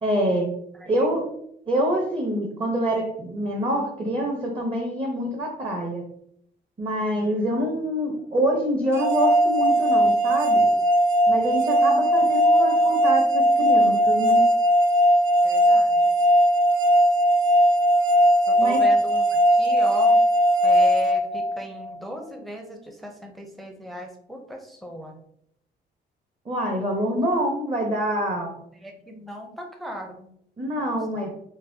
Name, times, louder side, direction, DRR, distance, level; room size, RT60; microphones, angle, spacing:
voice 1, 0.0-0.5 0.9-1.2 1.7-6.0 6.8-10.6 11.3-14.5 18.6-18.8 26.5-28.5 30.6-31.3, equal, 25° right, 0 dB, 0.7 m, -25 dB
voice 2, 7.0-7.4 15.4-16.1 18.5-20.2 20.6-25.2 28.8-30.3 30.7-31.3, equal, ahead, 2 dB, 0.5 m, -37 dB
sound 1, 9.0-21.9, equal, 75° right, 0.5 m, -19 dB
3.9 x 2.2 x 2.6 m, 0.71 s
cardioid pair, 90°, 20 cm